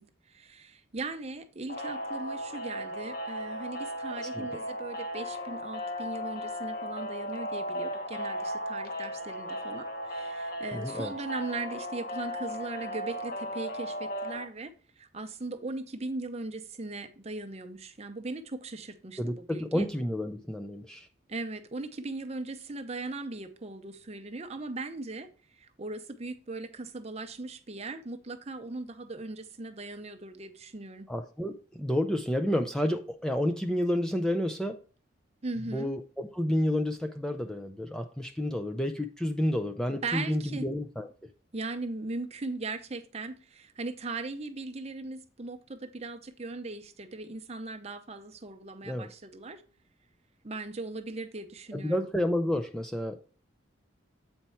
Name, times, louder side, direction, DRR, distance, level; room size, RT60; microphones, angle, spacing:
voice 1, 0.0-19.9 21.3-25.3 25.5-31.1 35.4-35.9 39.9-40.7 41.5-49.6 50.4-52.1, right 3 dB, 35° right, 0.7 m, -39 dB
sound 1, 1.7-14.5, equal, 50° left, 0.9 m, -36 dB
voice 2, 4.1-4.6 10.7-11.1 19.2-21.1 31.1-34.8 35.7-41.1 48.9-49.1 51.7-53.2, left 1 dB, 5° left, 0.4 m, -30 dB
8.2 x 4.4 x 4.3 m
head